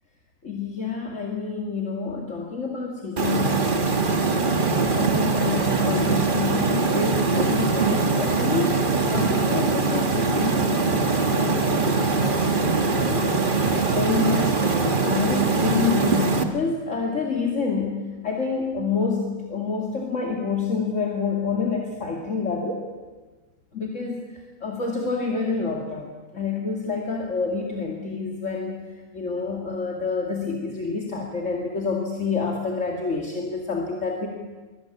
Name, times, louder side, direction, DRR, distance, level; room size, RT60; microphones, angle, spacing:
voice 1, 0.4-3.4 4.9-13.3 14.0-18.0 18.2-22.9 23.7-24.2 24.6-28.8 29.1-34.3, left 4 dB, 55° left, 0 dB, 2.6 m, -28 dB
sound 1, 3.2-16.4, right 4 dB, 35° right, 1.7 m, -22 dB
23.5 x 19.0 x 8.8 m, 1.3 s
omnidirectional pair, 1.5 m